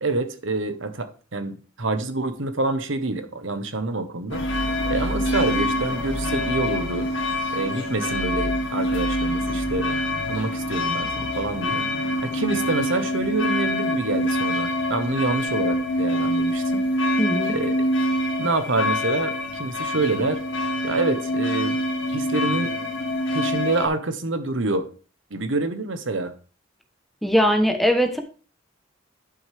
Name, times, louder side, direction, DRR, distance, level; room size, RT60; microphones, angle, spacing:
voice 1, 0.0-4.4 4.9-7.1 7.5-9.9 10.3-11.9 12.2-17.1 17.5-17.7 18.4-20.4 20.8-21.8 22.1-22.7 23.3-24.9 25.3-26.3, right 2 dB, 75° right, 1.1 m, -27 dB
sound 1, 4.3-23.9, left 1 dB, 75° left, 2.3 m, -25 dB
voice 2, 17.2-17.6 27.2-28.2, equal, ahead, 1.0 m, -20 dB
11.0 x 6.0 x 3.5 m
head